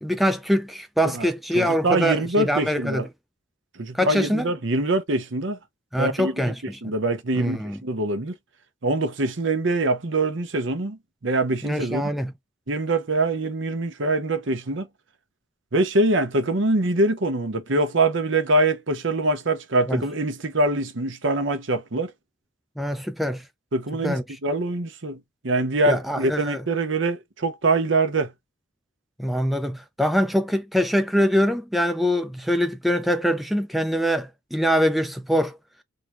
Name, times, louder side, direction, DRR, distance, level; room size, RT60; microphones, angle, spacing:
voice 1, 0.0-3.1 3.9-4.5 5.9-6.9 7.3-7.8 11.6-12.3 19.9-20.0 22.8-23.5 24.0-24.4 25.9-26.6 29.2-35.6, equal, ahead, 0.3 m, -24 dB
voice 2, 1.5-3.1 3.8-5.6 6.0-6.5 6.8-8.3 8.8-12.0 12.7-14.9 15.7-22.1 23.7-28.3, right 2 dB, 65° right, 0.9 m, -24 dB
3.8 x 2.2 x 3.0 m
head